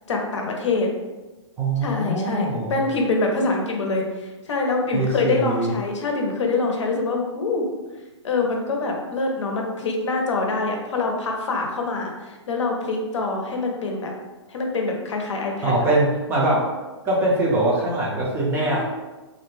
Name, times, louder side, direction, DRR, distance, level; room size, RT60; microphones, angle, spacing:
voice 1, 0.1-0.9 1.8-7.7 8.2-14.1 14.5-15.8 18.6-18.8, left 3 dB, 75° left, 1 dB, 0.6 m, -25 dB
voice 2, 1.6-2.8 4.9-5.7 15.6-16.6 17.0-18.8, right 2 dB, 15° right, -4 dB, 0.4 m, -22 dB
2.5 x 2.1 x 3.1 m, 1.2 s
hypercardioid pair, 145°, 15 cm